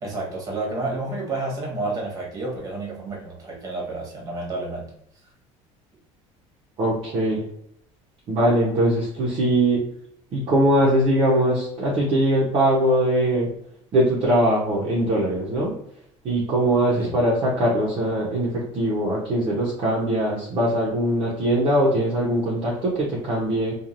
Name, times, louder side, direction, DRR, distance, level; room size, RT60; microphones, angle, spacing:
voice 1, 0.0-4.9 16.9-17.1, right 2 dB, 25° right, -2 dB, 1.1 m, -30 dB
voice 2, 6.8-7.5 8.3-9.8 10.3-13.5 13.9-15.7 16.2-23.7, right 1 dB, 40° right, -6 dB, 0.8 m, -21 dB
3.1 x 2.4 x 2.5 m, 0.70 s
cardioid pair, 150°, 13 cm